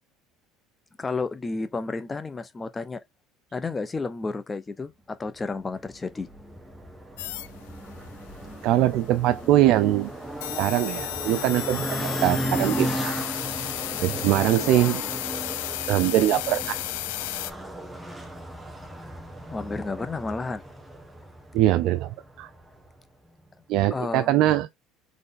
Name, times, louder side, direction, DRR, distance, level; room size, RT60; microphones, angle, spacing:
voice 1, 1.0-3.0 3.5-6.3 19.5-20.6 23.9-24.3, left 3 dB, 20° left, 0.8 m, -31 dB
sound 1, 5.5-23.0, right 1 dB, 5° right, 1.2 m, -35 dB
sound 2, 7.2-17.5, left 15 dB, 85° left, 0.4 m, -34 dB
voice 2, 8.6-10.1 10.6-13.1 14.0-15.0 15.9-16.8 21.5-22.1 22.4-22.5 23.7-24.7, right 13 dB, 65° right, 0.4 m, -22 dB
4.1 x 3.3 x 3.9 m
supercardioid pair, 105°, 0 cm